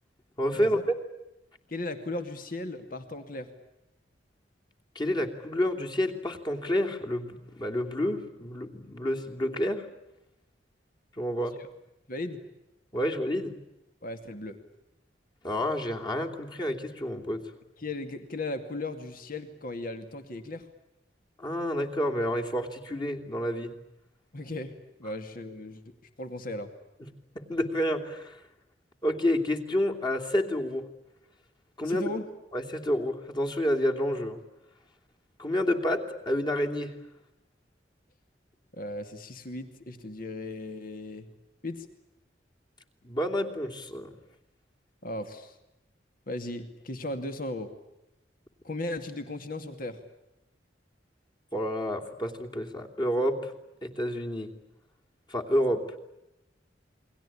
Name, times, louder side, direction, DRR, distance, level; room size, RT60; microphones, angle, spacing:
voice 1, 0.4-0.8 4.9-9.8 11.2-11.6 12.9-13.5 15.4-17.4 21.4-23.7 27.0-27.1 27.3-28.4 29.0-30.9 31.8-32.0 32.5-34.4 35.4-36.9 43.0-44.1 51.5-53.5 53.8-54.5 55.3-55.8, left 1 dB, 25° left, 2 dB, 3.0 m, -29 dB
voice 2, 1.7-3.5 12.1-12.4 14.0-14.6 17.8-20.7 24.3-24.7 25.0-25.8 26.2-26.7 31.8-32.3 38.7-41.3 41.6-41.9 45.0-45.5 46.3-47.7 48.6-50.0, left 2 dB, 50° left, 8 dB, 2.5 m, -36 dB
29.0 x 23.0 x 8.6 m, 0.91 s
head